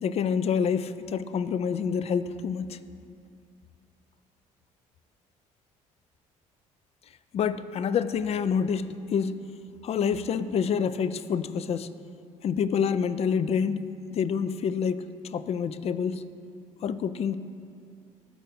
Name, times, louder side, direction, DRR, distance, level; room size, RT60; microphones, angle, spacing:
voice 1, 0.0-2.8 7.3-9.5 9.8-11.9 12.4-16.2 16.8-17.4, left 7 dB, 40° left, 14 dB, 0.4 m, -27 dB
12.0 x 4.6 x 2.6 m, 2.4 s
hypercardioid pair, 55°, 17 cm